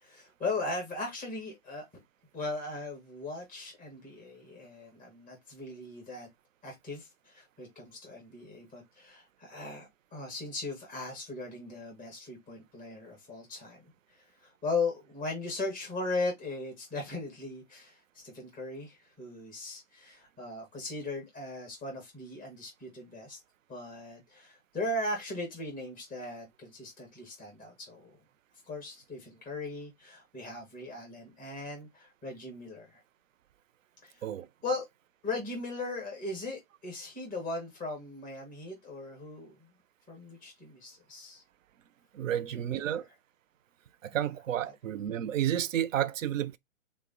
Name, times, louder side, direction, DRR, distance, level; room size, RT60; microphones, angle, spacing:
voice 1, 0.0-1.9 2.3-6.3 6.6-13.9 14.6-18.0 18.2-23.4 23.7-28.1 28.7-33.0 34.0-34.3 34.6-34.8 35.2-39.5 40.1-41.4 42.3-42.9, left 2 dB, 5° left, 0.4 m, -38 dB
voice 2, 42.1-43.0 44.0-46.6, right 11 dB, 75° right, 0.5 m, -31 dB
3.6 x 2.0 x 3.6 m
hypercardioid pair, 155°, 39 cm